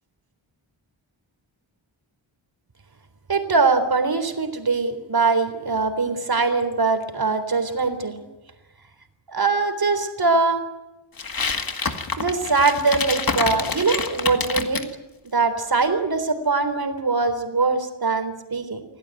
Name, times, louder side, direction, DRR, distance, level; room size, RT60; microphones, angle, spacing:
voice 1, 3.3-8.1 9.3-10.6 12.2-14.8 15.3-18.8, right 4 dB, 45° right, 9 dB, 3.8 m, -22 dB
sound 1, 11.2-14.9, left 4 dB, 45° left, 2.2 m, -27 dB
26.5 x 17.5 x 9.2 m, 1.0 s
wide cardioid pair, 115°, 49 cm